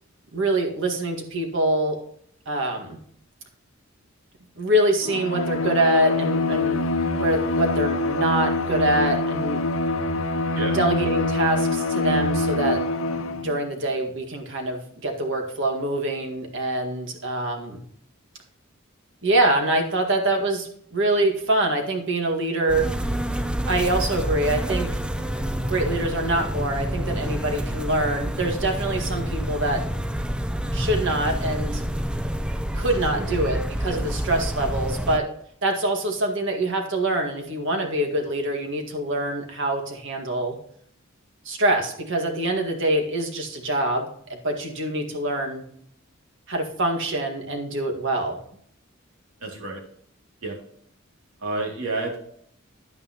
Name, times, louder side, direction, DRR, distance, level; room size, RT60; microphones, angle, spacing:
voice 1, 0.3-2.0 2.5-3.0 4.6-6.8 7.1-9.6 10.7-12.9 13.3-17.8 19.2-22.9 23.7-24.9 25.7-29.9 30.7-31.8 32.7-35.3 35.6-40.6 41.5-45.6 46.5-48.4, right 1 dB, 60° right, 2 dB, 1.8 m, -25 dB
Bowed string instrument, 5.0-13.6, left 2 dB, 75° left, 0.8 m, -25 dB
sound 1, 22.7-35.2, equal, 5° right, 0.5 m, -28 dB
voice 2, 32.8-33.3 33.9-34.1 49.4-49.8 50.4-50.6 51.4-52.2, right 2 dB, 85° right, 0 dB, 2.8 m, -30 dB
10.5 x 9.0 x 2.9 m, 0.65 s
head